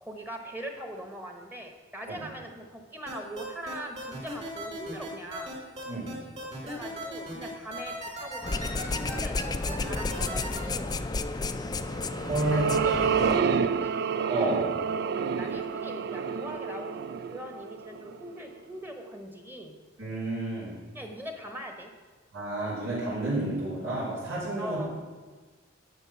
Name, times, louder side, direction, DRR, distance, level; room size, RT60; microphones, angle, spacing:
voice 1, 0.0-5.6 6.6-10.9 12.4-13.9 15.2-19.7 20.9-21.9 24.6-24.9, right 1 dB, 10° right, 4 dB, 1.1 m, -41 dB
sound 1, 3.1-10.6, right 1 dB, 35° right, 3.2 m, -38 dB
sound 2, 8.4-13.4, left 3 dB, 20° left, 0.4 m, -32 dB
sound 3, 11.8-18.3, right 6 dB, 55° right, 0.4 m, -29 dB
voice 2, 12.3-13.5 14.3-14.7 20.0-20.8 22.3-24.8, right 2 dB, 80° right, -9 dB, 3.6 m, -30 dB
11.0 x 6.7 x 6.0 m, 1.4 s
head